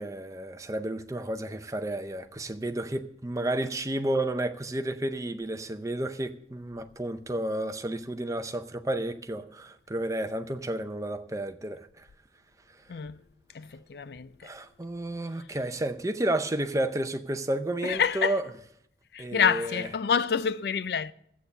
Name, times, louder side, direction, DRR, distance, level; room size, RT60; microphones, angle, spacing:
voice 1, 0.0-12.1 14.4-18.5 19.2-19.9, right 1 dB, 20° right, 0.6 m, -31 dB
voice 2, 12.9-13.2 13.5-14.3 17.8-18.4 19.1-21.1, left 7 dB, 60° left, 0.4 m, -27 dB
12.5 x 8.4 x 6.6 m
head